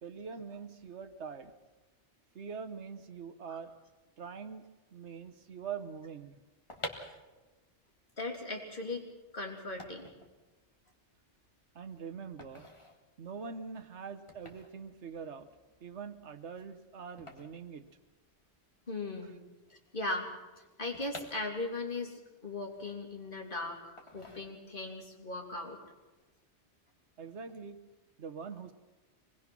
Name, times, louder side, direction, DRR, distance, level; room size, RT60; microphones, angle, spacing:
voice 1, 0.0-1.5 2.3-3.7 4.2-4.7 4.9-6.4 7.1-7.2 11.7-12.7 13.2-15.5 15.8-17.9 27.2-27.8 28.2-28.7, right 6 dB, 70° right, 10 dB, 1.5 m, -43 dB
sound 1, 6.4-18.6 18.8-18.9 19.1-22.0 22.4-23.4 24.0-25.0 25.3-25.6, left 1 dB, 25° left, 2.0 m, -50 dB
voice 2, 8.2-9.0 9.3-10.1 18.9-19.4 19.7-20.3 20.8-25.8, left 2 dB, 45° left, 1 dB, 3.2 m, -38 dB
25.0 x 19.5 x 6.1 m, 1.2 s
omnidirectional pair, 1.2 m